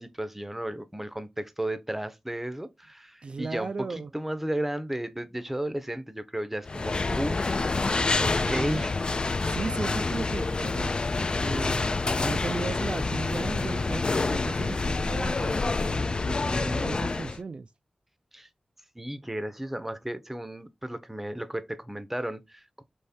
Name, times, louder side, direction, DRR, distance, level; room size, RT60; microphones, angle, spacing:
voice 1, 0.0-7.6 8.2-8.9 18.3-18.5 19.0-22.8, right 1 dB, 10° right, 0.6 m, -34 dB
voice 2, 3.2-4.1 8.4-8.8 9.4-10.9 11.2-11.9 12.2-17.7, right 4 dB, 55° right, 0.3 m, -36 dB
sound 1, 6.7-17.4, left 3 dB, 45° left, 0.4 m, -27 dB
3.5 x 3.1 x 4.1 m
wide cardioid pair, 65°, 2 cm